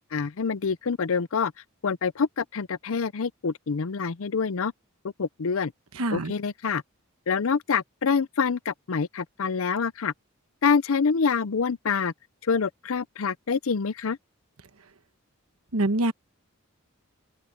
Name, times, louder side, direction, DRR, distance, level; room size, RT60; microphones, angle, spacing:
voice 1, 0.1-1.5 1.8-4.7 5.2-5.7 6.1-6.8 7.3-10.1 10.6-12.1 12.4-14.2, left 5 dB, 70° left, 0.6 m, -26 dB
voice 2, 5.9-6.3 15.7-16.1, right 2 dB, 80° right, 1.2 m, -24 dB
open air
head